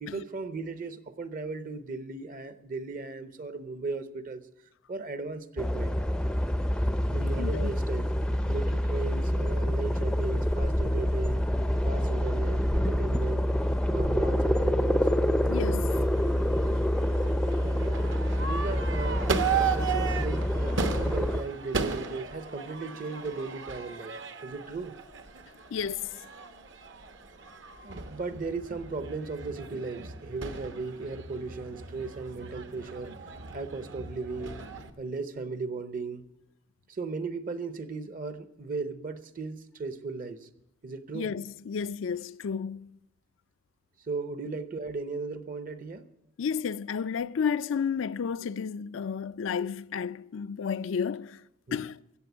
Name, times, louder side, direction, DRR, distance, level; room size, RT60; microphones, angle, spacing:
voice 1, 0.0-4.5 4.9-6.0 7.0-8.1 8.5-11.4 11.8-13.5 13.9-15.1 17.6-24.1 24.4-25.0 27.8-33.1 33.5-34.6 35.0-36.2 36.9-40.5 40.8-41.4 44.1-46.1 51.7-51.9, right 3 dB, 45° right, 0.8 m, -37 dB
sound 1, 5.6-21.4, equal, 5° left, 0.5 m, -27 dB
voice 2, 7.4-7.7 15.5-15.9 25.7-26.2 41.1-43.0 46.4-51.4 51.7-52.0, left 6 dB, 70° left, 0.4 m, -32 dB
Crowd / Fireworks, 15.9-34.9, right 5 dB, 65° right, 1.0 m, -36 dB
15.5 x 7.5 x 8.1 m
head